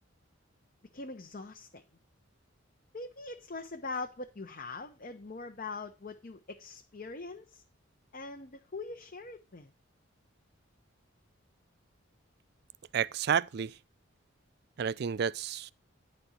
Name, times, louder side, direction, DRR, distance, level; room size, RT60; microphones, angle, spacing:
voice 1, 0.9-1.8 2.9-7.6 8.1-9.7, left 3 dB, 45° left, 0.8 m, -42 dB
voice 2, 12.9-13.8 14.8-15.7, right 7 dB, 55° right, 0.4 m, -30 dB
10.5 x 4.4 x 6.4 m
head